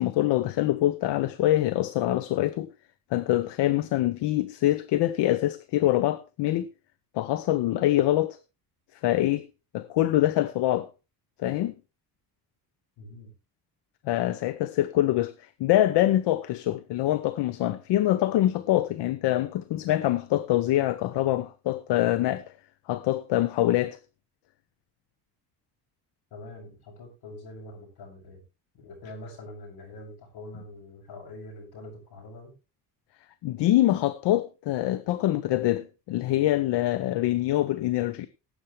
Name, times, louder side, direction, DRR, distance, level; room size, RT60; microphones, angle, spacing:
voice 1, 0.0-2.7 3.1-6.7 7.1-8.4 8.9-9.5 9.7-10.9 11.4-11.7 14.0-22.5 22.9-24.0 33.4-38.3, left 14 dB, 85° left, 0.9 m, -25 dB
voice 2, 13.0-13.3 26.3-28.4 28.7-32.5, left 1 dB, 70° left, 7.9 m, -44 dB
18.0 x 8.3 x 3.3 m
cardioid pair, 135°, 41 cm